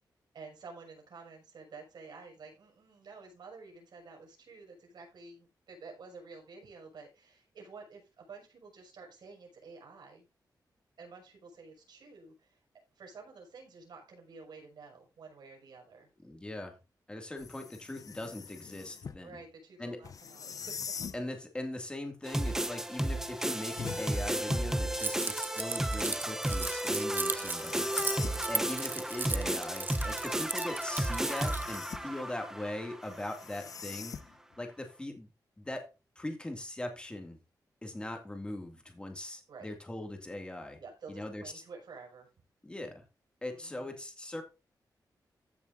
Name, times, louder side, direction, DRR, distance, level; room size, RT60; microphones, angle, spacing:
voice 1, 0.3-10.3 11.0-12.6 13.0-16.1 19.2-20.8 39.5-39.7 40.8-42.3 43.5-44.0, right 4 dB, 75° right, 1 dB, 6.0 m, -50 dB
voice 2, 16.2-16.8 17.1-19.4 19.8-20.0 21.1-27.9 28.5-34.2 34.6-35.3 35.6-35.9 36.2-37.4 37.8-40.8 41.1-41.6 42.6-43.0 43.4-44.4, left 1 dB, 15° left, 4 dB, 2.3 m, -40 dB
sound 1, 17.4-19.2 20.0-21.2 23.8-24.8 27.1-28.4 29.9-32.2 33.0-34.6, left 6 dB, 55° left, 0.6 m, -44 dB
sound 2, 22.2-33.3, right 1 dB, 5° right, 0.8 m, -33 dB
Keys jangling, 25.0-31.8, right 4 dB, 25° right, 0.4 m, -37 dB
15.0 x 7.1 x 2.6 m, 0.29 s
wide cardioid pair, 165°, 7 cm